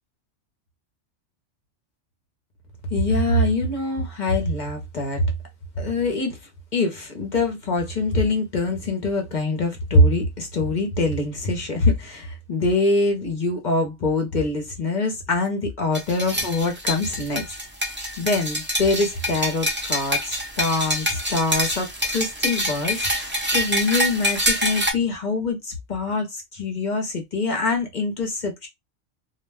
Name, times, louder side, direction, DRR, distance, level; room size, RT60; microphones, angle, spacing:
voice 1, 2.9-5.3 5.8-6.4 6.7-17.4 18.2-28.7, left 2 dB, 45° left, 0.7 m, -24 dB
sound 1, 15.9-24.9, equal, 15° right, 0.4 m, -26 dB
2.3 x 2.1 x 3.3 m
omnidirectional pair, 1.2 m